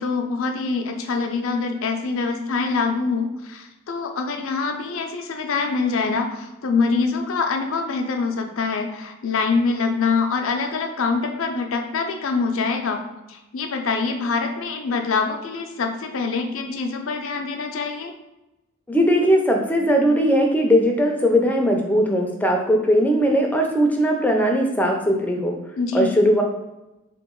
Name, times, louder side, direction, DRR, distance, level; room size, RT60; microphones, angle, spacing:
voice 1, 0.0-13.0 13.3-18.1 25.8-26.1, left 4 dB, 70° left, 4 dB, 0.5 m, -24 dB
voice 2, 18.9-25.6 25.9-26.4, equal, 10° left, 2 dB, 0.4 m, -19 dB
3.4 x 3.0 x 3.7 m, 0.97 s
head